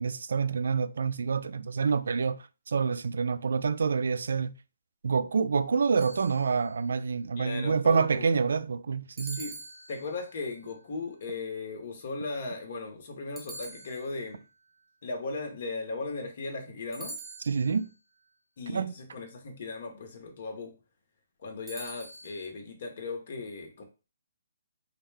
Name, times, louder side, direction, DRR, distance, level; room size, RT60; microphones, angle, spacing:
voice 1, 0.0-2.4 2.7-4.5 5.0-9.4 17.5-17.9 18.7-18.9, right 5 dB, 70° right, 0.3 m, -27 dB
sound 1, 6.0-6.9 9.2-10.4 13.4-14.4 16.9-17.9 21.7-22.5, right 2 dB, 15° right, 0.8 m, -45 dB
voice 2, 7.4-8.3 9.3-9.6 9.9-14.4 15.0-17.2 18.6-20.8 21.4-23.8, left 3 dB, 55° left, 1.2 m, -37 dB
4.5 x 2.3 x 3.3 m
hypercardioid pair, 145°, 0 cm